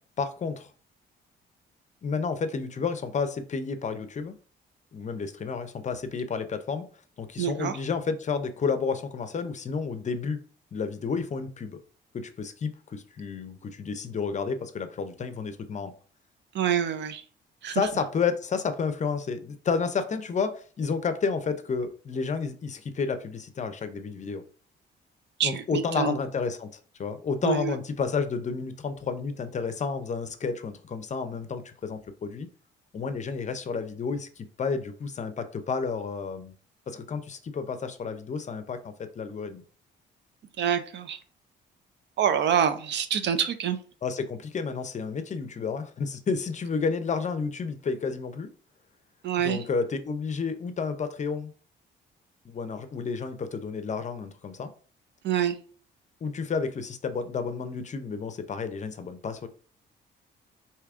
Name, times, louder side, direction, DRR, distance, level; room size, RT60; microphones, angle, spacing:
voice 1, 0.2-0.7 2.0-4.3 4.9-6.8 7.2-10.4 10.7-11.8 12.1-15.9 17.7-24.4 25.4-26.7 27.0-32.5 32.9-36.5 36.9-39.6 44.0-48.5 49.4-51.5 52.5-54.7 56.2-59.5, left 5 dB, 35° left, 10 dB, 0.5 m, -31 dB
voice 2, 7.4-7.8 16.5-17.2 17.6-17.8 25.4-26.2 27.4-27.7 40.6-41.2 42.2-43.8 49.2-49.6 55.2-55.6, right 8 dB, 65° right, 10 dB, 0.5 m, -26 dB
4.6 x 2.8 x 2.4 m, 0.41 s
cardioid pair, 90°, 20 cm